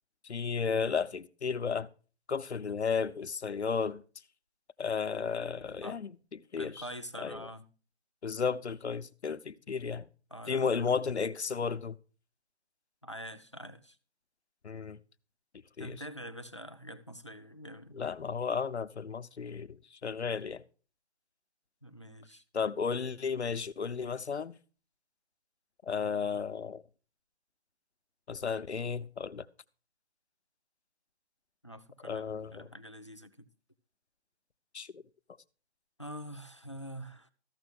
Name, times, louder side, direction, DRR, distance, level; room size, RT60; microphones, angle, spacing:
voice 1, 0.2-1.9 2.3-4.0 4.8-6.1 6.5-6.8 7.2-7.5 8.2-10.0 10.5-12.0 14.6-15.0 15.8-16.0 17.9-20.6 22.5-24.5 25.9-26.8 28.3-29.5 32.0-32.7 34.7-35.0, left 5 dB, 80° left, 0.9 m, -33 dB
voice 2, 6.6-7.7 10.3-10.8 13.0-14.0 15.8-18.0 21.8-22.4 31.6-33.5 36.0-37.3, equal, 25° left, 0.6 m, -45 dB
14.0 x 6.1 x 6.2 m
figure-of-eight pair, 175°, 33 cm